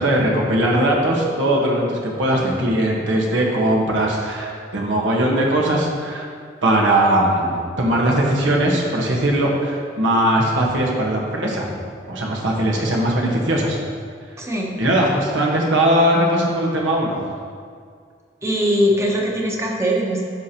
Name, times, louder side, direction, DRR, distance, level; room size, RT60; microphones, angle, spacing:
voice 1, 0.0-6.3 6.6-11.7 12.1-13.8 14.8-17.2, right 1 dB, 85° right, -2 dB, 1.3 m, -19 dB
voice 2, 14.4-14.7 18.4-20.2, equal, 15° right, -1 dB, 0.9 m, -21 dB
10.5 x 6.0 x 2.9 m, 2.1 s
head